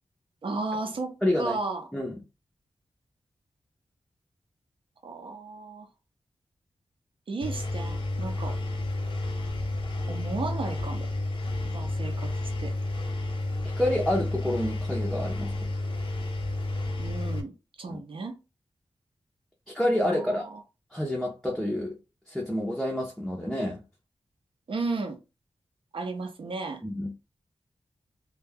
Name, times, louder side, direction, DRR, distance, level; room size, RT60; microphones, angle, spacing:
voice 1, 0.4-1.9 5.0-5.9 7.3-8.6 10.1-11.1 11.6-12.7 17.0-17.5 17.8-18.4 20.1-20.6 24.7-25.2 25.9-26.8, right 3 dB, 60° right, 0.6 m, -34 dB
voice 2, 1.2-1.6 1.9-2.2 13.8-15.7 17.9-18.0 19.7-20.4 20.9-22.0 22.3-23.8 26.8-27.1, left 1 dB, ahead, 0.5 m, -28 dB
Engine, 7.4-17.4, left 2 dB, 60° left, 0.5 m, -31 dB
2.3 x 2.1 x 3.3 m
wide cardioid pair, 100°, 10 cm